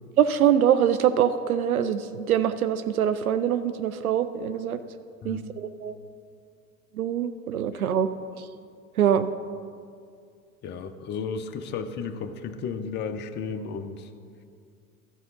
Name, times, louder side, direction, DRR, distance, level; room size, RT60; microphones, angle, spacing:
voice 1, 0.2-4.8 5.2-6.0 7.0-8.1 9.0-9.3, right 9 dB, 80° right, 11 dB, 0.5 m, -24 dB
voice 2, 10.6-14.1, left 5 dB, 25° left, 7 dB, 0.6 m, -33 dB
12.5 x 4.8 x 6.5 m, 2.2 s
figure-of-eight pair, 80°, 42 cm